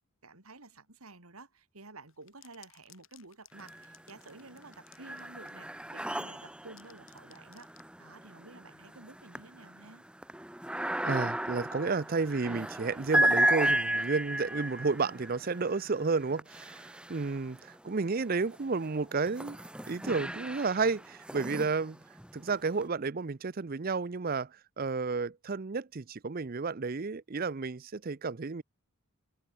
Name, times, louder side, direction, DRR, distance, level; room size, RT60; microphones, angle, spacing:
voice 1, 0.2-7.7 8.0-10.0, right 3 dB, 80° right, 3.3 m, -52 dB
sound 1, 2.1-5.7 6.4-7.9, left 12 dB, 65° left, 5.3 m, -59 dB
sound 2, 3.5-4.2 4.5-17.7 18.4-22.8, right 1 dB, 5° right, 0.8 m, -34 dB
voice 2, 11.0-19.6 19.9-22.0 22.3-28.6, right 4 dB, 40° right, 0.6 m, -32 dB
open air
head